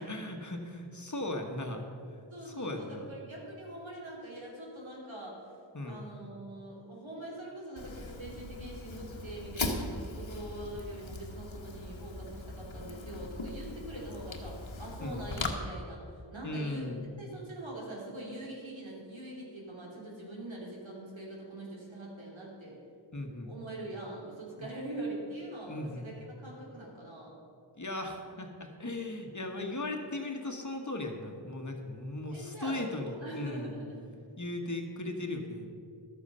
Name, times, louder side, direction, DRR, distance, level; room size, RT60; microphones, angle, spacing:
voice 1, 0.0-3.1 5.7-6.0 15.0-15.3 16.4-17.1 23.1-23.5 25.7-26.1 27.7-33.7 34.4-35.7, left 2 dB, 35° left, 3 dB, 1.4 m, -37 dB
voice 2, 2.3-5.4 5.9-22.8 23.4-27.3 32.3-34.3, right 1 dB, 70° right, -3 dB, 3.1 m, -43 dB
Fire, 7.8-15.5, left 3 dB, 70° left, 1.3 m, -39 dB
12.5 x 8.1 x 5.6 m, 2.4 s
wide cardioid pair, 55°, 48 cm